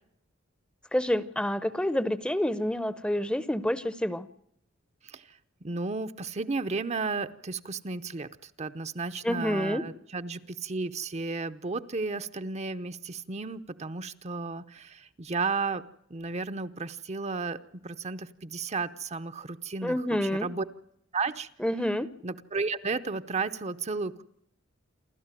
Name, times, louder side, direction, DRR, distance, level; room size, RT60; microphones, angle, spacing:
voice 1, 0.9-4.3 9.2-9.8 19.8-20.5 21.6-22.1, left 1 dB, 5° left, 14 dB, 0.8 m, -28 dB
voice 2, 5.6-15.8 16.1-20.6 21.1-21.5 22.2-24.2, right 4 dB, 35° right, 12 dB, 0.8 m, -33 dB
28.5 x 13.0 x 9.1 m, 0.73 s
head